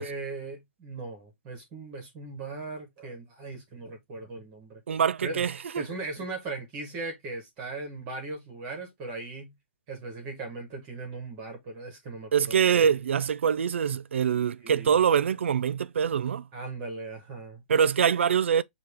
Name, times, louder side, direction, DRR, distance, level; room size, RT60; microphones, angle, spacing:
voice 1, 0.0-4.8 5.2-5.5 5.8-9.5 9.9-12.8 14.6-15.0 16.5-17.6, right 3 dB, 15° right, 0.8 m, -38 dB
voice 2, 4.9-5.8 12.3-16.5 17.7-18.6, right 7 dB, 85° right, 0.4 m, -24 dB
5.8 x 2.3 x 3.3 m
hypercardioid pair, 180°, 6 cm